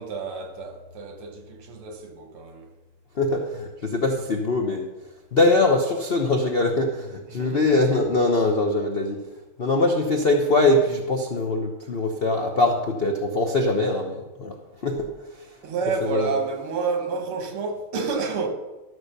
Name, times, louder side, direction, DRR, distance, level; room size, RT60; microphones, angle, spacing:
voice 1, 0.0-2.7 7.3-7.9 15.6-18.5, right 4 dB, 75° right, 2.2 m, -29 dB
voice 2, 3.1-4.9 5.3-9.2 9.6-15.5 16.0-16.3, left 2 dB, 60° left, 0.6 m, -22 dB
13.0 x 6.4 x 6.7 m
omnidirectional pair, 2.4 m